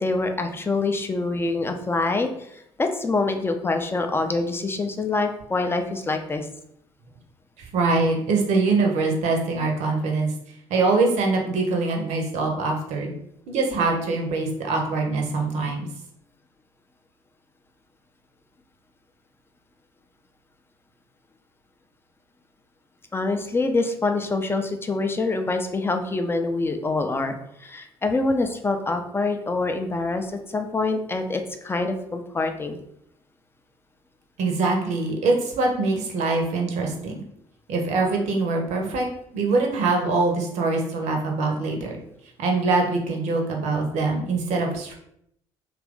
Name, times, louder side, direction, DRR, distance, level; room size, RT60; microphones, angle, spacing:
voice 1, 0.0-6.5 23.1-27.4 27.6-32.8, left 3 dB, 15° left, 6 dB, 0.5 m, -25 dB
voice 2, 7.6-10.3 10.7-13.1 13.5-15.9 34.4-37.2 37.7-39.1 39.3-42.0 42.4-44.9, right 3 dB, 55° right, 1 dB, 0.7 m, -23 dB
3.0 x 2.4 x 3.5 m, 0.74 s
figure-of-eight pair, 50°, 15 cm